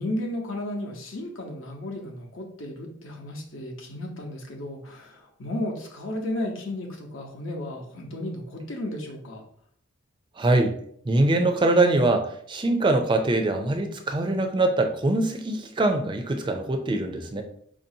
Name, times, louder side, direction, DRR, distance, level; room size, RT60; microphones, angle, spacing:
voice 1, 0.0-9.4, left 1 dB, 70° left, 2 dB, 0.9 m, -34 dB
voice 2, 10.4-10.8 11.0-17.4, right 2 dB, 25° right, 6 dB, 0.4 m, -23 dB
4.8 x 2.6 x 2.7 m, 0.66 s
head